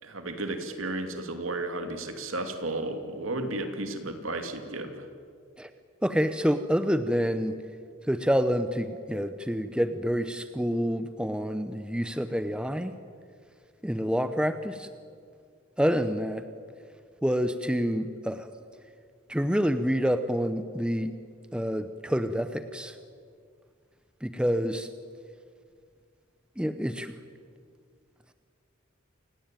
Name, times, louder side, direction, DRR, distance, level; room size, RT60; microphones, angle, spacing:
voice 1, 0.0-5.1, right 2 dB, 75° right, 6 dB, 2.7 m, -33 dB
voice 2, 6.0-7.6 8.1-12.9 13.8-14.9 15.8-16.5 17.2-18.5 19.3-21.2 21.5-23.0 24.2-24.9 26.6-27.2, equal, 5° right, 10 dB, 0.8 m, -27 dB
28.5 x 18.0 x 9.2 m, 2.2 s
head